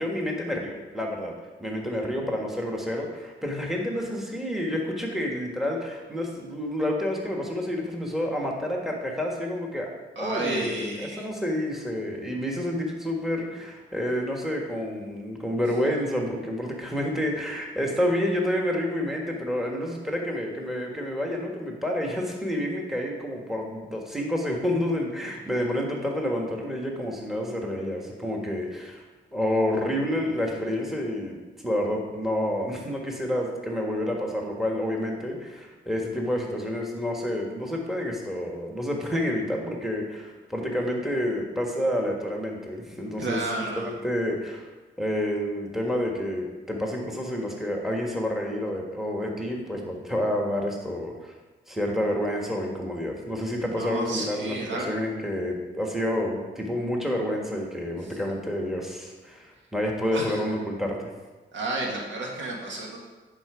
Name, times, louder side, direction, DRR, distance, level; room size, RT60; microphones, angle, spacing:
voice 1, 0.0-1.3 1.6-9.9 10.2-29.0 29.3-31.4 31.6-43.4 43.8-44.7 45.0-51.3 51.7-61.1, left 1 dB, ahead, 0 dB, 1.6 m, -29 dB
voice 2, 10.2-11.3 43.2-43.9 53.8-54.9 58.0-58.1 60.1-60.4 61.5-63.0, right 2 dB, 70° right, -1 dB, 2.0 m, -31 dB
10.5 x 4.6 x 5.0 m, 1.2 s
cardioid pair, 70°, 20 cm